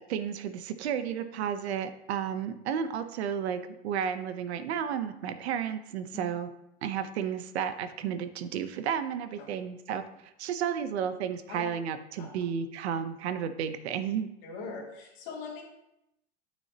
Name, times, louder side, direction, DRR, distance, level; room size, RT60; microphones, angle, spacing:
voice 1, 0.1-6.5 6.8-14.3, right 8 dB, 85° right, 10 dB, 0.8 m, -32 dB
voice 2, 14.4-15.6, left 4 dB, 45° left, -2 dB, 2.3 m, -40 dB
9.3 x 6.3 x 2.8 m, 0.83 s
supercardioid pair, 170°, 31 cm